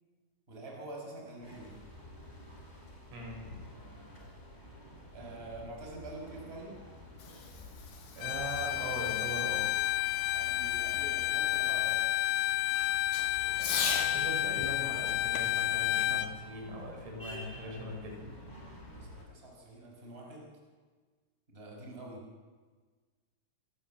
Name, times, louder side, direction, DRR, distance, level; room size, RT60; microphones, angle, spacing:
voice 1, 0.5-1.7 5.1-6.7 10.3-12.0 18.9-20.5 21.5-22.2, right 2 dB, 10° right, -1 dB, 5.2 m, -46 dB
sound 1, 1.4-19.3, left 1 dB, 10° left, 4.1 m, -50 dB
voice 2, 3.1-3.6 8.2-9.7 13.4-18.3, equal, 85° right, 1 dB, 8.2 m, -40 dB
Fireworks, 7.0-14.2 15.3-17.0, left 6 dB, 55° left, 4.0 m, -41 dB
Bowed string instrument, 8.2-16.3, left 13 dB, 80° left, 2.5 m, -31 dB
27.0 x 18.0 x 7.6 m, 1.4 s
omnidirectional pair, 5.8 m